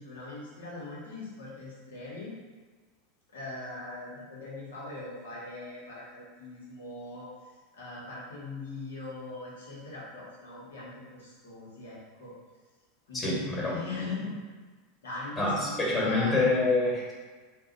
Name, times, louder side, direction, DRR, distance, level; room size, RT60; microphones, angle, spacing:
voice 1, 0.0-2.3 3.3-7.3 7.7-12.3 13.1-14.4 15.0-16.4, left 2 dB, 85° left, -6 dB, 1.1 m, -40 dB
voice 2, 13.1-13.8 15.4-17.1, left 2 dB, 20° left, -5 dB, 1.3 m, -26 dB
2.6 x 2.2 x 3.8 m, 1.4 s
hypercardioid pair, 100°, 0 cm